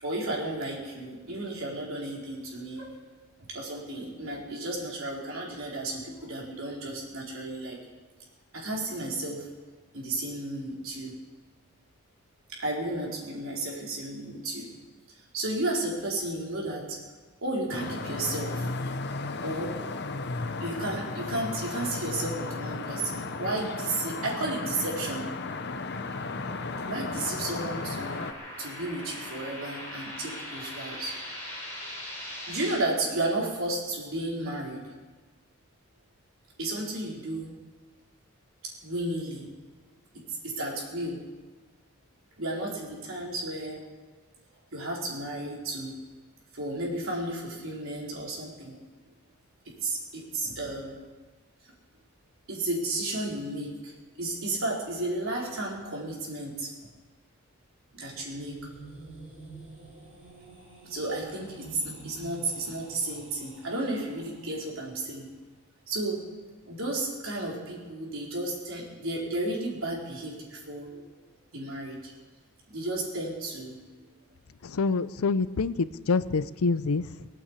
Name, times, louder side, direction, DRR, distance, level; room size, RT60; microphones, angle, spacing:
voice 1, 0.0-2.9 3.5-7.8 8.5-9.5 9.9-11.1 12.5-14.7 15.1-17.0 17.4-18.8 19.4-20.0 20.6-25.3 26.9-28.2 28.6-31.2 32.5-34.9 36.6-37.6 38.8-39.5 40.1-41.2 42.4-43.8 44.7-45.9 46.5-48.8 49.6-51.0 52.5-53.9 54.2-56.7 57.9-58.6 60.8-65.3 65.9-66.2 66.6-71.0 71.5-72.1 72.7-73.8, right 2 dB, 70° right, -3 dB, 4.3 m, -33 dB
sound 1, 17.7-28.3, left 3 dB, 50° left, 0.8 m, -34 dB
sound 2, 24.9-32.8, left 1 dB, 10° left, 7.1 m, -42 dB
sound 3, 57.8-64.8, right 3 dB, 30° right, 4.0 m, -48 dB
voice 2, 74.6-77.3, left 4 dB, 80° left, 15 dB, 0.6 m, -27 dB
19.5 x 8.6 x 8.2 m, 1.3 s
head